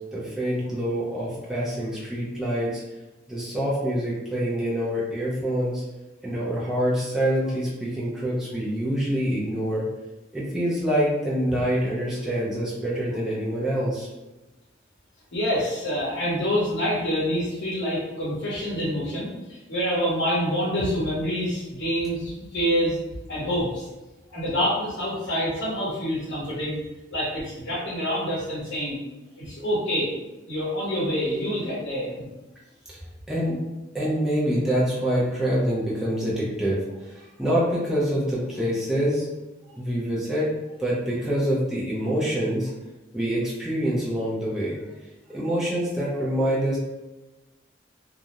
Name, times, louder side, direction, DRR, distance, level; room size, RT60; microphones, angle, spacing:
voice 1, 0.1-2.8 3.3-5.8 6.2-9.8 10.3-14.1 32.9-33.0 33.3-33.6 33.9-36.8 37.0-39.3 39.8-40.5 40.8-42.7 43.1-44.7 45.3-46.8, equal, 5° right, -7 dB, 0.5 m, -26 dB
voice 2, 15.3-23.0 23.3-23.9 24.3-26.8 27.1-29.0 29.4-30.1 30.5-32.2, equal, 70° left, -8 dB, 0.8 m, -26 dB
2.4 x 2.0 x 2.8 m, 1.0 s
head